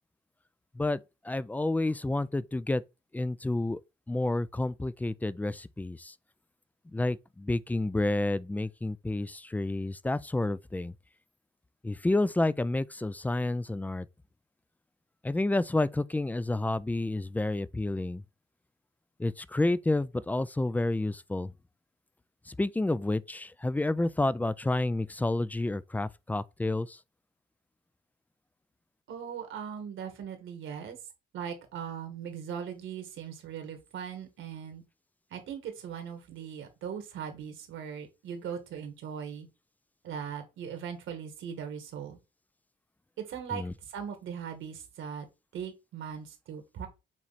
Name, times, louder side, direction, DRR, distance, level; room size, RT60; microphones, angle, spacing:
voice 1, 1.2-2.8 3.1-3.8 4.1-6.1 6.9-10.9 11.8-14.1 15.2-18.2 19.2-21.5 22.5-27.0 43.5-43.7, left 2 dB, 10° left, 0.3 m, -30 dB
voice 2, 29.1-31.0 31.3-34.8 35.3-39.5 40.0-42.2 43.2-45.3 45.5-46.9, right 8 dB, 80° right, 1.9 m, -39 dB
7.3 x 3.1 x 4.1 m
cardioid pair, 90°, 20 cm